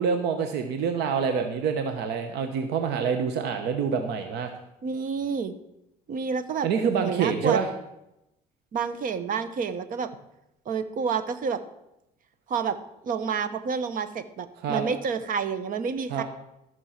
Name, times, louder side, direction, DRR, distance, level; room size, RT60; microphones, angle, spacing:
voice 1, 0.0-4.5 6.6-7.7 14.6-14.8 16.1-16.2, right 6 dB, 80° right, 6 dB, 1.1 m, -26 dB
voice 2, 4.8-5.5 6.1-6.7 6.9-7.6 8.7-10.1 10.7-11.6 12.5-12.8 13.0-16.2, right 6 dB, 55° right, 12 dB, 1.1 m, -29 dB
14.0 x 6.3 x 5.9 m, 0.87 s
cardioid pair, 110°, 17 cm